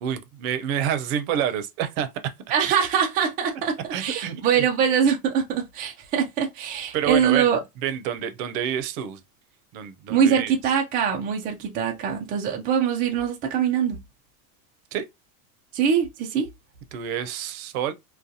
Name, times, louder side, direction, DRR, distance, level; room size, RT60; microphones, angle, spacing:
voice 1, 0.0-2.1 3.9-4.7 6.9-7.5 7.8-9.2 9.7-10.5 14.9-15.0 16.9-17.9, right 9 dB, 55° right, 0.7 m, -28 dB
voice 2, 2.5-7.6 10.1-14.0 15.7-16.5, right 7 dB, 20° right, 0.3 m, -23 dB
2.4 x 2.2 x 2.7 m
hypercardioid pair, 105°, 49 cm